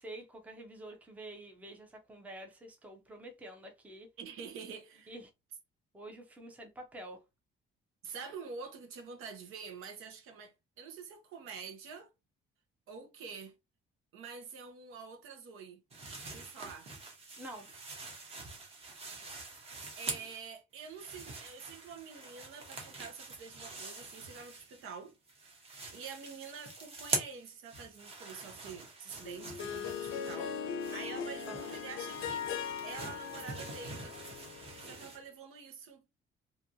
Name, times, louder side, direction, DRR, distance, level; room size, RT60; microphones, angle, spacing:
voice 1, 0.0-4.1 5.1-5.3 5.9-7.2 17.4-17.7 31.5-31.7, right 1 dB, 5° right, 0.5 m, -48 dB
voice 2, 4.2-5.1 8.0-12.1 12.9-13.5 14.1-15.8 16.3-16.9 20.0-25.1 25.9-30.5 30.9-32.5 32.8-34.1 34.8-36.0, right 5 dB, 85° right, 0.9 m, -47 dB
sound 1, 15.9-20.5 20.8-25.0 25.3-35.2, right 3 dB, 30° right, 0.9 m, -44 dB
Harp, 29.2-35.0, left 7 dB, 70° left, 0.5 m, -40 dB
2.8 x 2.6 x 2.6 m
cardioid pair, 165°, 21 cm